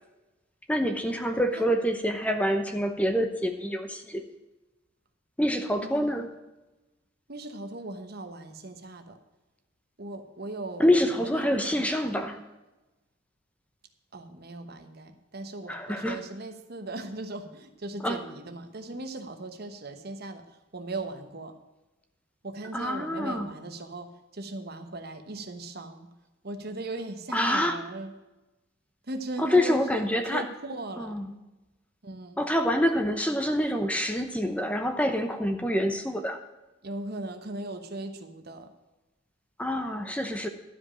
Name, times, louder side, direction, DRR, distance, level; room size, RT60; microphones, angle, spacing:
voice 1, 0.7-4.2 5.4-6.3 10.8-12.4 15.7-16.2 18.0-18.2 22.7-23.5 27.3-27.8 29.4-30.5 31.0-31.3 32.4-36.4 39.6-40.5, equal, 5° left, 6 dB, 0.8 m, -26 dB
voice 2, 5.8-6.2 7.3-9.2 10.0-12.1 14.1-21.5 22.4-26.1 26.4-28.1 29.1-31.1 32.0-32.4 36.8-38.7, right 2 dB, 50° right, 7 dB, 1.1 m, -38 dB
12.0 x 5.2 x 8.6 m, 1.0 s
head